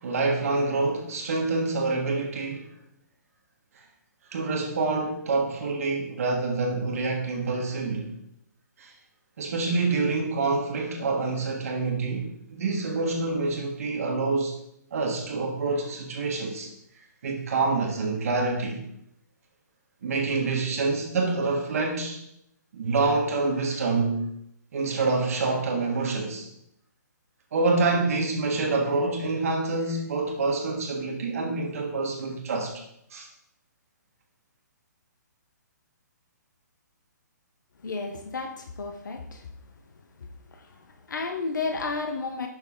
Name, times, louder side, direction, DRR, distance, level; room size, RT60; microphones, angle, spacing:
voice 1, 0.0-2.7 3.8-3.9 4.3-8.1 8.8-8.9 9.4-14.6 14.9-16.7 17.0-18.8 20.0-22.2 22.7-24.3 24.7-26.5 27.5-32.8 33.1-33.3, right 3 dB, 50° right, 1 dB, 1.4 m, -27 dB
voice 2, 37.8-39.7 40.2-42.5, left 4 dB, 85° left, 6 dB, 0.8 m, -33 dB
6.3 x 6.1 x 3.7 m, 0.78 s
hypercardioid pair, 165°, 10 cm